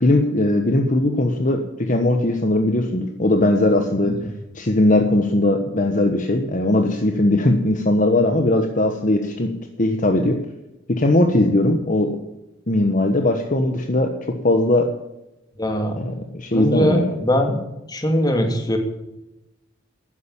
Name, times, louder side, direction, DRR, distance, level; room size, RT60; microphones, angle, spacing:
voice 1, 0.0-4.1 4.5-9.5 9.8-10.4 10.9-12.2 12.7-14.1 14.4-14.9 16.0-17.1, left 1 dB, 40° left, 5 dB, 1.2 m, -19 dB
voice 2, 15.6-16.0 16.5-17.6 17.9-18.8, equal, 20° left, 4 dB, 2.5 m, -21 dB
13.0 x 9.9 x 8.5 m, 0.93 s
head